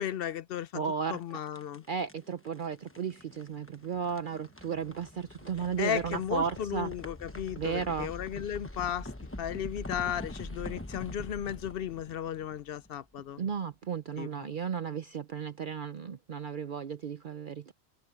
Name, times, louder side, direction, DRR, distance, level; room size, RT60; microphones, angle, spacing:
voice 1, 0.0-0.8 1.1-1.8 5.8-9.1 9.4-13.4 14.2-14.3, left 9 dB, 60° left, 0.8 m, -35 dB
voice 2, 0.7-1.2 1.9-6.9 7.6-8.1 13.4-17.7, right 7 dB, 50° right, 0.8 m, -34 dB
sound 1, 1.1-13.2, left 1 dB, 10° left, 1.1 m, -45 dB
omnidirectional pair, 1.2 m